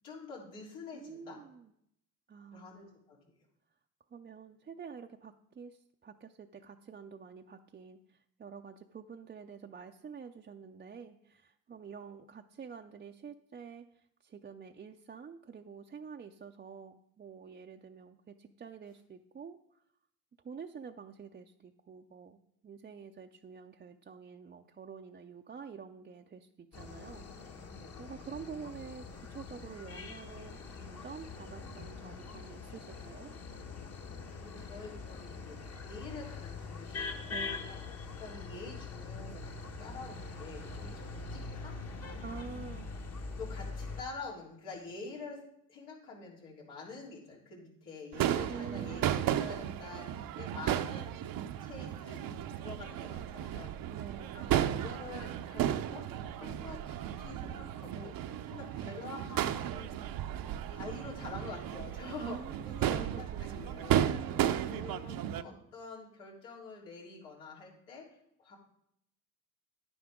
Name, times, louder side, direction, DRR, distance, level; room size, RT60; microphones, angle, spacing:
voice 1, 0.0-1.4 2.5-3.2 27.7-28.0 34.4-35.6 35.8-41.8 43.3-45.4 45.7-53.7 54.3-56.1 56.4-60.0 60.7-64.4 64.7-68.1 68.4-68.6, left 4 dB, 85° left, -5 dB, 3.6 m, -47 dB
voice 2, 0.9-1.7 2.3-2.9 4.1-19.8 20.4-27.6 28.0-33.3 37.3-37.7 42.2-42.9 48.5-49.3 53.9-54.5 62.2-64.6, right 6 dB, 25° right, 3 dB, 0.5 m, -48 dB
sound 1, 26.7-44.0, left 4 dB, 40° left, 1.3 m, -43 dB
Crowd / Fireworks, 48.1-65.4, right 11 dB, 60° right, 0.7 m, -34 dB
10.0 x 9.8 x 3.6 m, 0.74 s
supercardioid pair, 75°, 39 cm